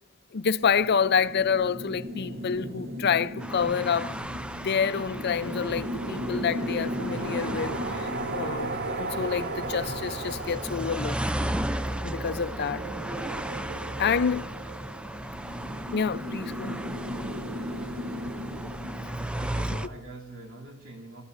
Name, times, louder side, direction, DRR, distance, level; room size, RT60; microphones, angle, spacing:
voice 1, 0.3-4.2 4.5-11.2 12.0-12.8 14.0-14.5 15.9-16.9, left 6 dB, 55° left, 0.5 m, -28 dB
sound 1, 0.6-19.8, right 1 dB, 50° right, 0.9 m, -36 dB
sound 2, 3.4-19.9, right 1 dB, 5° right, 0.4 m, -35 dB
voice 2, 14.6-15.0 19.3-21.2, right 1 dB, 75° right, 2.9 m, -44 dB
20.0 x 13.0 x 2.6 m
head